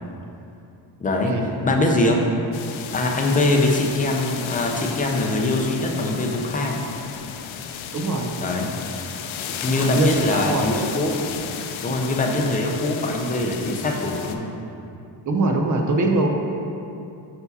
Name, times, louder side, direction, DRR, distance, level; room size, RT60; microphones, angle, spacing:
voice 1, 1.0-1.3 1.6-2.2 2.9-6.8 8.4-8.7 9.6-11.2 11.8-14.5, left 2 dB, 20° left, 1 dB, 0.4 m, -22 dB
sound 1, 2.5-14.3, left 7 dB, 85° left, 0.5 m, -33 dB
voice 2, 7.9-8.3 9.7-10.6 15.3-16.4, right 2 dB, 40° right, 2 dB, 0.6 m, -22 dB
5.4 x 4.7 x 4.0 m, 2.7 s
wide cardioid pair, 165°, 46 cm